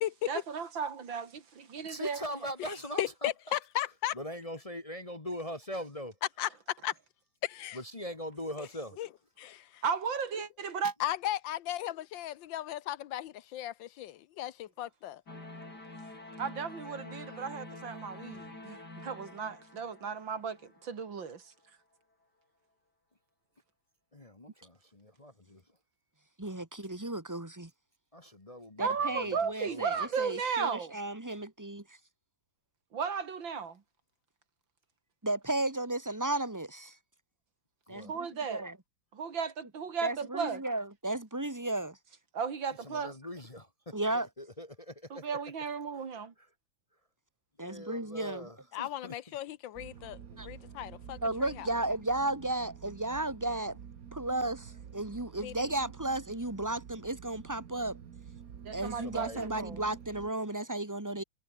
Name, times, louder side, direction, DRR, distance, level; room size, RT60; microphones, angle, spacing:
voice 1, 0.3-2.2 9.8-10.9 16.4-21.4 28.8-31.0 32.9-33.8 38.1-38.7 39.1-40.6 42.3-43.1 45.1-46.3 58.6-59.8, right 6 dB, 75° right, 3.1 m, -35 dB
voice 2, 1.8-3.3 4.1-6.1 7.7-9.0 24.1-25.6 28.1-28.9 29.2-30.1 37.9-38.1 42.8-45.2 45.9-46.0 47.6-49.1 58.9-59.6, equal, 20° left, 1.3 m, -42 dB
voice 3, 2.7-4.2 6.4-6.5 6.8-6.9 7.5-7.8 8.6-8.7 9.0-9.1 9.4-9.8 11.0-15.2 48.7-51.7 55.4-55.7, left 13 dB, 80° left, 1.5 m, -36 dB
sound 1, 15.3-21.3, left 2 dB, 55° left, 8.0 m, -47 dB
voice 4, 26.4-27.7 28.8-31.8 35.2-36.9 37.9-38.1 38.5-38.7 40.0-42.0 43.9-44.3 47.6-48.5 50.4-50.5 51.2-53.8 54.1-58.0 58.7-61.2, right 2 dB, 10° right, 1.9 m, -34 dB
sound 2, 49.7-60.3, right 8 dB, 50° right, 1.6 m, -49 dB
omnidirectional pair, 2.1 m